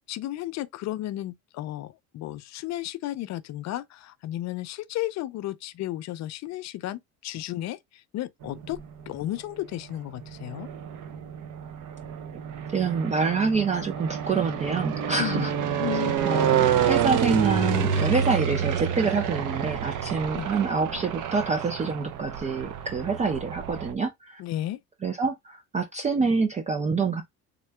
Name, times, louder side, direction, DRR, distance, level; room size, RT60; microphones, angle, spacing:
voice 1, 0.1-8.8 9.1-10.7 15.2-15.5 15.8-16.2 20.3-20.5 24.4-24.8, left 14 dB, 50° left, 0.4 m, -33 dB
sound 1, 8.4-9.2 9.9-23.9, right 8 dB, 55° right, 0.7 m, -28 dB
voice 2, 12.7-15.5 15.9-24.4 25.0-27.2, right 4 dB, 20° right, 0.4 m, -26 dB
3.6 x 2.2 x 3.3 m
supercardioid pair, 105°, 37 cm